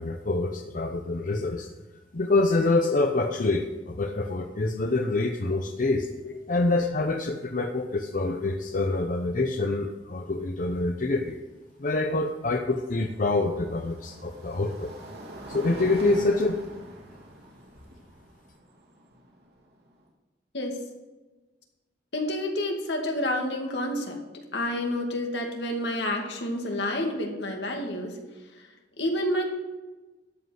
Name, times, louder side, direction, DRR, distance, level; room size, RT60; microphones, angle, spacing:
voice 1, 0.0-1.7 2.1-6.1 6.5-11.4 11.8-14.9 15.5-16.6, left 2 dB, 50° left, 3 dB, 0.7 m, -26 dB
sound 1, 6.2-6.3 6.6-7.0 8.9-9.0 12.0-20.1, right 1 dB, 65° right, 2.7 m, -44 dB
voice 2, 22.1-24.2 24.5-28.2 29.0-29.4, left 1 dB, 75° left, 2 dB, 2.1 m, -29 dB
13.0 x 5.3 x 7.8 m, 1.2 s
head